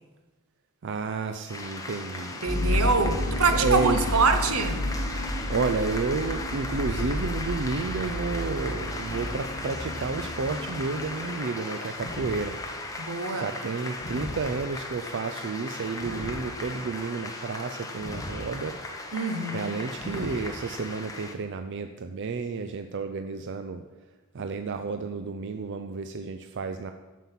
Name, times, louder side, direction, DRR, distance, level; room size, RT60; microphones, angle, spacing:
voice 1, 0.8-2.4 3.5-4.0 5.1-12.6 13.3-18.8 19.5-23.8 24.3-26.9, right 4 dB, 55° right, 7 dB, 0.5 m, -31 dB
sound 1, 1.5-21.3, left 2 dB, 15° left, 1.0 m, -37 dB
sound 2, 2.4-11.2, left 1 dB, 45° left, 2.1 m, -31 dB
voice 2, 2.4-4.9 13.0-13.5 19.1-19.8, right 4 dB, 80° right, 8 dB, 1.0 m, -25 dB
sound 3, 12.0-13.0 13.9-15.0 15.9-17.0 18.0-19.0 19.9-21.0, equal, 65° left, 1.6 m, -40 dB
9.2 x 7.5 x 5.8 m, 1.2 s
head